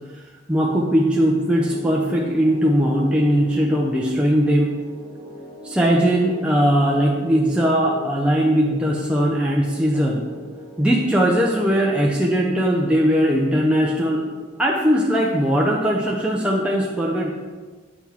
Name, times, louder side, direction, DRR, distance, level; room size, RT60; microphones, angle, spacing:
voice 1, 0.5-4.8 5.6-10.3 10.8-14.2 14.6-17.3, equal, 5° right, -3 dB, 0.5 m, -19 dB
sound 1, 1.5-15.9, equal, 55° right, 1.9 m, -40 dB
8.2 x 5.7 x 3.6 m, 1.4 s
head